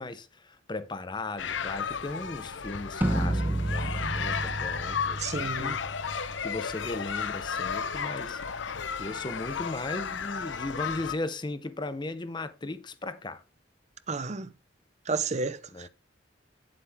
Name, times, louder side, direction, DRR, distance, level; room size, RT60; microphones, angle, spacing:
voice 1, 0.0-5.8 6.4-8.4 9.0-13.4 15.7-15.9, left 2 dB, 25° left, 0.7 m, -37 dB
sound 1, 1.4-11.2, left 6 dB, 80° left, 0.7 m, -33 dB
sound 2, 3.0-9.0, right 1 dB, 10° right, 0.9 m, -33 dB
voice 2, 5.2-5.8 14.1-14.5 15.1-15.9, right 4 dB, 40° right, 0.7 m, -31 dB
8.8 x 7.7 x 3.5 m
head